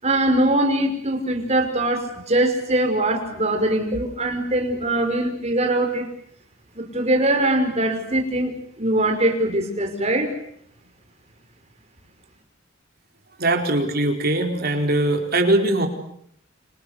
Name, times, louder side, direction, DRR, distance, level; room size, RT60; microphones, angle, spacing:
voice 1, 0.0-6.1 6.8-8.5 8.8-10.3, right 1 dB, 35° right, 4 dB, 5.4 m, -22 dB
voice 2, 13.4-15.9, right 1 dB, 50° right, 4 dB, 4.5 m, -21 dB
30.0 x 27.5 x 6.7 m, 0.70 s
head